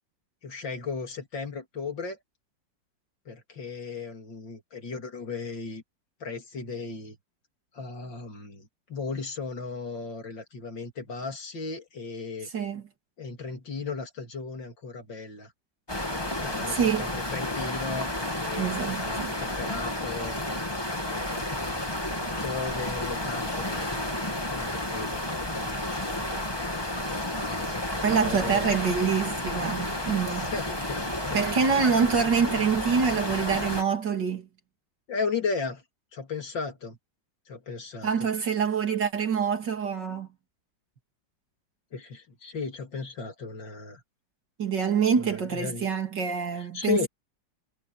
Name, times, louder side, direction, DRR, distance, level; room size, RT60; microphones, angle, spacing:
voice 1, 0.4-2.2 3.3-5.8 6.2-7.2 7.7-12.5 13.2-15.5 16.0-20.4 21.1-24.1 24.6-26.5 27.3-28.7 30.2-31.4 35.1-35.8 36.1-37.0 37.5-38.3 41.9-44.0 45.2-45.9 46.6-47.1, left 4 dB, 75° left, 3.9 m, -36 dB
voice 2, 12.5-12.8 16.7-17.1 18.6-19.3 28.0-30.5 31.3-34.5 38.0-40.3 44.6-47.1, right 6 dB, 65° right, 3.5 m, -26 dB
sound 1, 15.9-33.8, left 1 dB, 15° left, 2.7 m, -31 dB
omnidirectional pair, 2.0 m